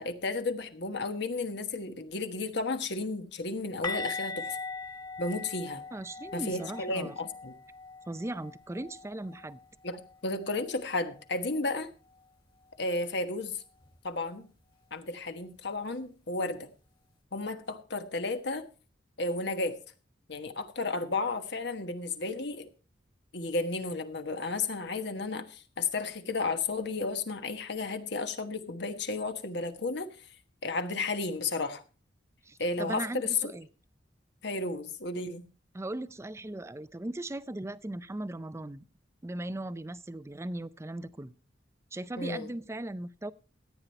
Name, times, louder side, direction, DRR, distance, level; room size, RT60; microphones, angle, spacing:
voice 1, 0.0-4.6 5.2-5.8 6.3-7.5 9.8-11.9 12.8-13.6 14.0-14.5 14.9-16.7 17.3-18.6 19.2-19.8 20.3-22.7 23.3-30.1 30.6-31.8 32.6-33.3 34.4-35.4 42.2-42.5, left 3 dB, 65° left, 1.3 m, -33 dB
sound 1, 3.8-9.6 9.9-10.1 10.5-10.6 13.9-14.0, left 4 dB, 25° left, 1.9 m, -40 dB
voice 2, 5.9-7.1 8.1-9.6 32.4-33.7 35.7-38.8 39.2-41.3 41.9-43.3, right 1 dB, 15° right, 0.5 m, -38 dB
14.0 x 9.5 x 4.4 m
head